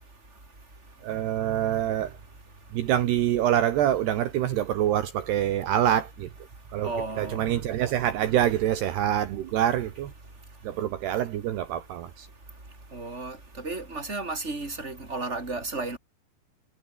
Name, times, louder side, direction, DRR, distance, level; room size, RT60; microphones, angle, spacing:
voice 1, 1.0-2.2 2.7-6.3 6.7-6.9 7.2-10.1 10.6-12.3, right 11 dB, 70° right, 3.4 m, -25 dB
voice 2, 6.8-7.4 12.9-16.0, right 3 dB, 15° right, 5.7 m, -33 dB
omnidirectional pair, 5.2 m